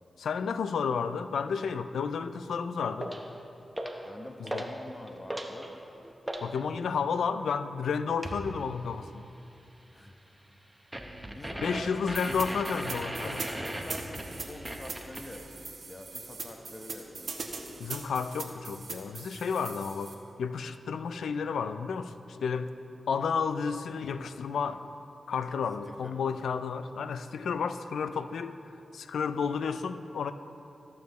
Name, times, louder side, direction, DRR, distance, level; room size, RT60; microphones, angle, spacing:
voice 1, 0.2-3.1 4.4-4.7 6.4-9.3 11.6-13.5 17.8-20.1 20.4-22.1 22.4-22.7 23.1-24.8 25.3-28.6 28.9-30.3, left 6 dB, 90° left, 11 dB, 0.3 m, -31 dB
sound 1, 3.0-3.3 3.7-4.1 4.5-4.8 5.1-6.5 8.2-8.5 10.9-15.4, right 1 dB, 15° right, 1.0 m, -37 dB
voice 2, 4.0-5.8 9.9-10.1 11.2-12.1 13.4-17.8 25.8-26.4, left 1 dB, 35° left, 3 dB, 1.0 m, -46 dB
sound 2, 12.1-20.1, right 4 dB, 70° right, 1.0 m, -41 dB
14.0 x 7.1 x 3.1 m, 2.8 s
cardioid pair, 45°, 0 cm